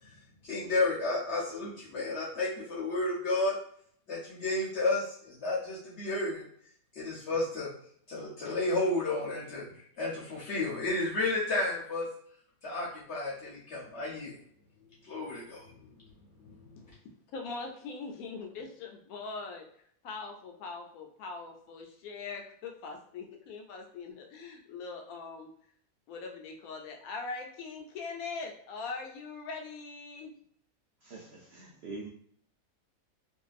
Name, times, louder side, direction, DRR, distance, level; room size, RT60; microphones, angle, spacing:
voice 1, 0.4-3.5 4.1-6.4 6.9-7.7 8.1-12.1 12.6-14.4 15.0-15.9 16.4-16.9, left 2 dB, 55° left, -6 dB, 0.9 m, -32 dB
voice 2, 17.3-19.6 20.0-25.5 26.1-30.3, left 4 dB, 80° left, 2 dB, 1.0 m, -41 dB
voice 3, 31.0-32.1, right 3 dB, 65° right, -5 dB, 0.6 m, -44 dB
2.6 x 2.2 x 2.4 m, 0.63 s
omnidirectional pair, 1.5 m